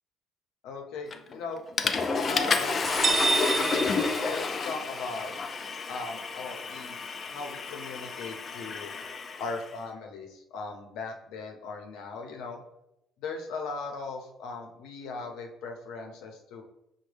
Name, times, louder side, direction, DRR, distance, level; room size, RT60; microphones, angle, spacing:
voice 1, 0.6-1.6 2.3-2.8 4.3-5.3 5.9-7.0 7.2-8.9 9.4-12.6 13.2-16.6, left 3 dB, 85° left, 3 dB, 0.7 m, -38 dB
Water / Toilet flush, 1.1-1.4 1.8-9.6, left 4 dB, 35° left, 0.3 m, -30 dB
sound 1, 2.8-4.8, right 4 dB, 30° right, 0.4 m, -28 dB
6.1 x 2.1 x 3.3 m, 0.86 s
cardioid pair, 125°, 0 cm